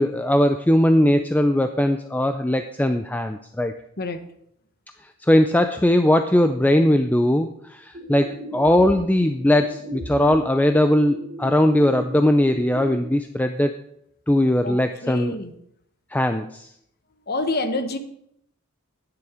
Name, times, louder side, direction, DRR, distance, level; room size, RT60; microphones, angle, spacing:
voice 1, 0.0-3.7 5.2-13.7 14.3-15.3 16.1-16.7, left 1 dB, 5° left, 8 dB, 0.4 m, -19 dB
sound 1, 7.9-12.9, left 1 dB, 35° right, 1.8 m, -38 dB
voice 2, 15.0-15.5 17.3-18.0, left 2 dB, 45° left, 9 dB, 1.1 m, -27 dB
12.0 x 9.6 x 4.9 m, 0.74 s
head